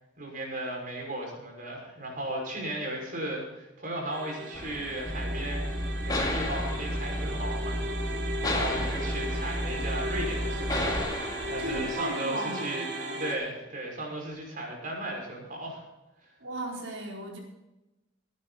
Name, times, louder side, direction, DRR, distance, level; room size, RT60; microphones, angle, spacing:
voice 1, 0.2-5.7 6.1-7.8 8.5-12.9 13.1-15.8, right 1 dB, 45° right, 0 dB, 5.8 m, -36 dB
sound 1, 4.1-13.4, right 1 dB, 60° right, 3.1 m, -37 dB
sound 2, 4.5-11.9, left 2 dB, 20° left, 2.4 m, -36 dB
sound 3, 5.1-11.0, equal, 15° right, 1.1 m, -33 dB
voice 2, 11.6-12.8 16.4-17.4, right 1 dB, 90° right, -1 dB, 4.5 m, -35 dB
18.5 x 10.5 x 4.2 m, 1.0 s
head